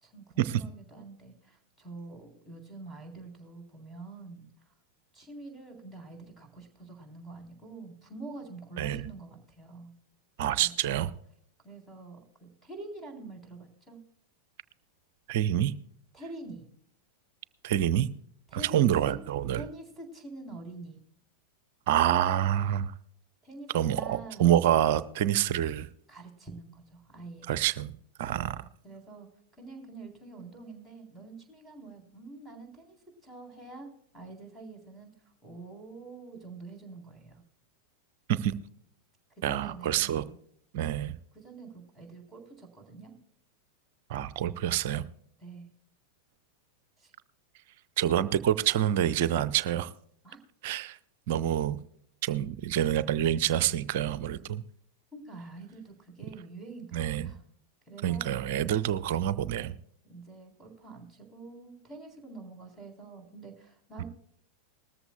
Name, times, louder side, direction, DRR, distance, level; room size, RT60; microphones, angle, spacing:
voice 1, 0.0-4.7 5.1-9.9 10.6-11.0 11.6-14.0 16.1-16.6 18.5-19.2 19.5-21.0 23.4-24.6 26.1-27.5 28.3-29.3 29.6-33.0 33.2-37.4 39.4-40.4 41.3-43.2 45.4-45.7 47.0-47.1 50.2-50.4 55.1-57.4 57.9-58.4 60.0-64.0, right 3 dB, ahead, 1 dB, 3.7 m, -46 dB
voice 2, 10.4-11.1 15.3-15.7 17.6-18.1 18.5-19.6 21.9-22.9 23.7-25.9 27.5-27.9 28.2-28.6 38.3-38.5 39.4-40.2 40.7-41.1 44.1-45.0 48.0-49.9 50.6-51.0 51.3-51.8 52.2-54.6 56.9-57.3 58.0-59.8, right 11 dB, 50° right, 16 dB, 0.6 m, -27 dB
19.5 x 14.0 x 2.3 m, 0.66 s
figure-of-eight pair, 90°, 0 cm